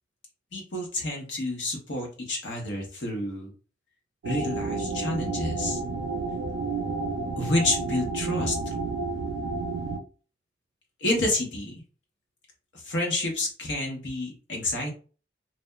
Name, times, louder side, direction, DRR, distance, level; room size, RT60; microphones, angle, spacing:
voice 1, 0.5-3.5 4.2-5.8 7.4-8.7 11.0-11.8 12.7-14.9, left 1 dB, 80° left, 1 dB, 0.8 m, -29 dB
sound 1, 4.2-10.0, right 3 dB, 90° right, 0.4 m, -31 dB
2.8 x 2.1 x 2.2 m, 0.37 s
head